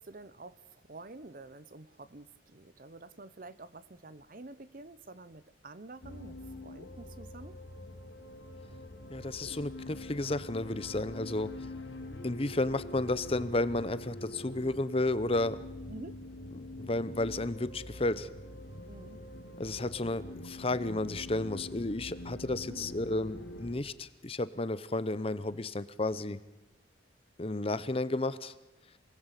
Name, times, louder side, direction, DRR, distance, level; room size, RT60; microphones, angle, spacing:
voice 1, 0.0-7.6 15.9-16.2 18.9-19.2 22.7-22.9, right 2 dB, 45° right, 16 dB, 0.9 m, -49 dB
sound 1, 6.0-23.8, left 1 dB, 85° left, 3.0 m, -45 dB
voice 2, 9.1-11.5 12.2-15.6 16.5-18.3 19.6-26.4 27.4-28.5, left 2 dB, 30° left, 15 dB, 0.8 m, -32 dB
27.5 x 19.5 x 8.3 m, 0.98 s
head